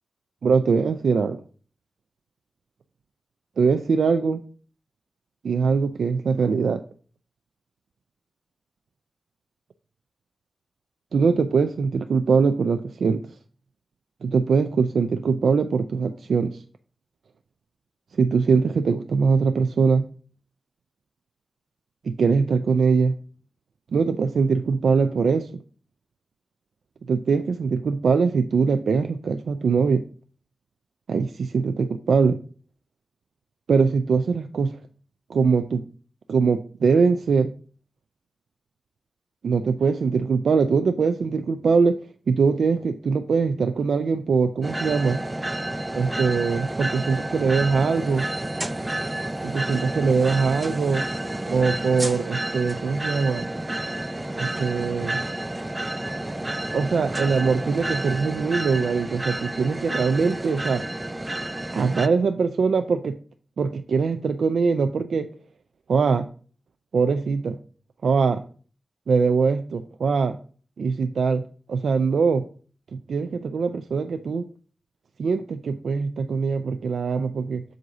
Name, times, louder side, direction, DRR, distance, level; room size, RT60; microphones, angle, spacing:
voice 1, 0.4-1.4 3.6-4.4 5.4-6.8 11.1-13.2 14.2-16.6 18.1-20.1 22.0-23.2 23.9-25.6 27.1-30.0 31.1-32.4 33.7-34.8 35.3-35.8 36.3-37.5 39.4-42.0 42.3-45.2 45.9-48.3 49.4-51.1 51.5-53.5 54.4-55.2 56.7-60.8 61.7-63.2 63.6-65.3 65.9-66.3 66.9-67.6 68.0-68.4 69.1-70.4 70.8-72.5 72.9-74.4 75.2-77.6, right 5 dB, 90° right, 7 dB, 0.3 m, -22 dB
sound 1, 44.6-62.1, right 1 dB, 20° right, 0.4 m, -30 dB
7.6 x 2.7 x 5.9 m, 0.42 s
wide cardioid pair, 70°, 0 cm